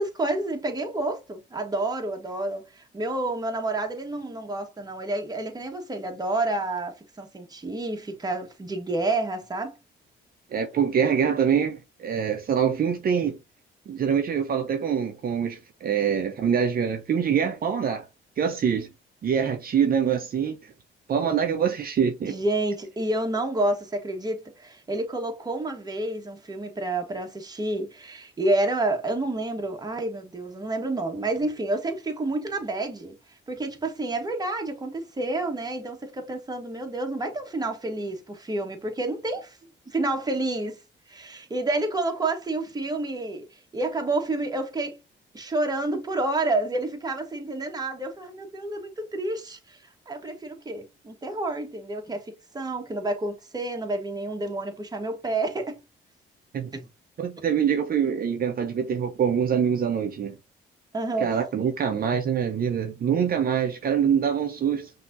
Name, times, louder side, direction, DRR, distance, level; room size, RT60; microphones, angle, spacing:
voice 1, 0.0-9.7 22.2-33.1 33.5-39.6 39.9-40.8 41.1-45.0 45.3-49.8 50.1-55.8 56.7-56.8 60.9-61.4, right 2 dB, 20° right, 1.2 m, -29 dB
voice 2, 10.5-13.4 13.9-18.1 18.4-18.9 19.2-20.7 21.1-22.3 56.5-56.7 57.2-60.3 61.2-64.9, right 7 dB, 50° right, 0.7 m, -24 dB
5.8 x 2.8 x 2.5 m
cardioid pair, 90°, 20 cm